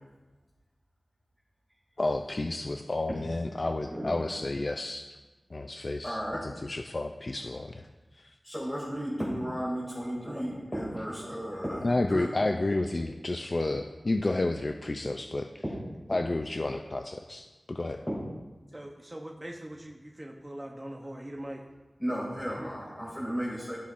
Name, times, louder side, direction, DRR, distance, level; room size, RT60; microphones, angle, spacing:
voice 1, 2.0-5.1 5.5-7.8 8.2-8.3 11.8-15.6 16.1-18.0, left 2 dB, 45° left, 5 dB, 0.4 m, -31 dB
voice 2, 6.0-6.4 8.4-12.4 18.1-18.2 22.0-23.8, equal, 10° left, -8 dB, 2.4 m, -34 dB
voice 3, 18.7-21.6, right 1 dB, 20° right, 0 dB, 0.8 m, -41 dB
14.5 x 5.8 x 2.5 m, 1.2 s
wide cardioid pair, 75°, 0 cm